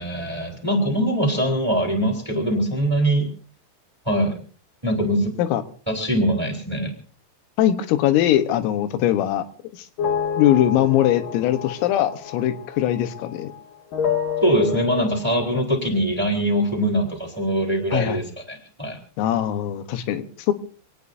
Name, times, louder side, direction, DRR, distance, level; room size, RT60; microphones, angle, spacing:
voice 1, 0.0-3.3 4.0-4.4 4.8-5.3 5.9-6.9 14.4-18.2 18.5-19.0, right 1 dB, 5° right, 2 dB, 3.0 m, -22 dB
voice 2, 7.6-9.5 10.4-13.5 17.9-18.3 19.2-20.5, left 12 dB, 90° left, 10 dB, 3.8 m, -21 dB
sound 1, 10.0-13.6 13.9-15.6, left 7 dB, 60° left, 2.4 m, -29 dB
27.0 x 18.5 x 2.7 m, 0.42 s
omnidirectional pair, 5.8 m